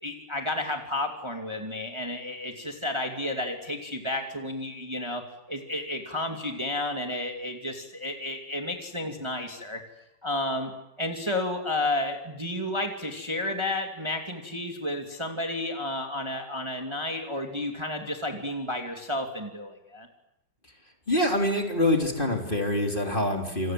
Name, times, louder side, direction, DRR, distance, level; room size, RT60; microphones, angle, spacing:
voice 1, 0.0-5.2 5.5-9.8 10.2-10.7 11.0-20.1, left 1 dB, 10° right, 3 dB, 2.7 m, -31 dB
voice 2, 21.1-23.7, left 1 dB, 20° left, 3 dB, 3.4 m, -25 dB
28.0 x 27.0 x 7.7 m, 0.87 s
omnidirectional pair, 2.4 m